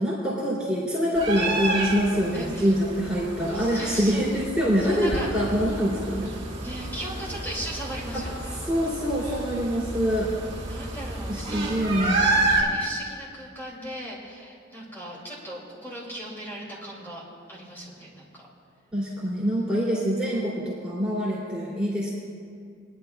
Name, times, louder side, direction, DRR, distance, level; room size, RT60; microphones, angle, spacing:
voice 1, 0.0-6.3 8.1-8.3 8.6-10.3 11.3-12.2 18.9-22.1, equal, 5° right, -9 dB, 2.6 m, -25 dB
sound 1, 1.1-12.6, right 2 dB, 30° right, 2.1 m, -30 dB
voice 2, 2.3-2.7 3.5-4.4 4.8-5.3 6.6-8.6 10.7-11.8 12.3-18.5, right 1 dB, 10° left, -4 dB, 2.5 m, -38 dB
24.0 x 11.0 x 2.3 m, 2.3 s
head